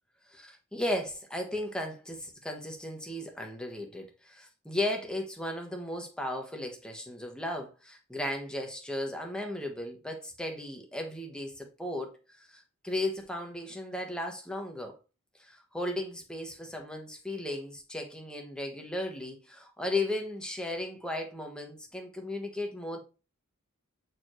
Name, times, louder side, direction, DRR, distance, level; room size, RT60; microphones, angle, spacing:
voice 1, 0.3-15.0 15.4-23.0, left 1 dB, 5° left, 1.2 m, -35 dB
8.3 x 4.6 x 3.1 m
head